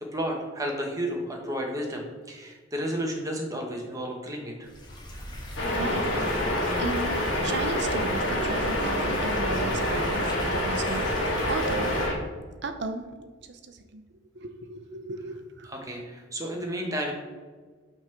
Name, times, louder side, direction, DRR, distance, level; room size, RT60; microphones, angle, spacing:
voice 1, 0.1-4.7 15.6-17.1, equal, 20° right, 1 dB, 1.1 m, -32 dB
sound 1, 4.6-12.1, equal, 25° left, 1.4 m, -37 dB
sound 2, 5.6-12.1, left 1 dB, 85° left, 1.6 m, -27 dB
voice 2, 5.7-6.1 6.8-10.3 10.6-13.1 13.5-14.0 14.3-15.7, right 2 dB, 65° right, 8 dB, 0.7 m, -35 dB
5.8 x 3.6 x 5.9 m, 1.4 s
head